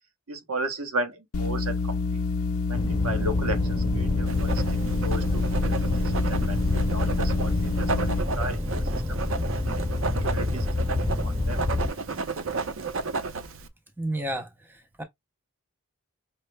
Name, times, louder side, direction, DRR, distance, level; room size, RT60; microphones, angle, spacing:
voice 1, 0.3-2.2 2.7-3.6 3.9-4.6 5.0-5.6 6.0-6.6 6.9-8.1 8.4-8.6 8.9-9.0 9.7-11.6, right 2 dB, 75° right, 1.0 m, -34 dB
sound 1, 1.3-8.2, left 4 dB, 70° left, 0.5 m, -28 dB
sound 2, 2.7-11.9, left 1 dB, 25° right, 1.1 m, -28 dB
Writing, 4.3-13.7, right 4 dB, 60° right, 0.5 m, -33 dB
voice 2, 14.0-15.0, right 1 dB, 10° right, 0.5 m, -32 dB
5.6 x 2.1 x 3.2 m
head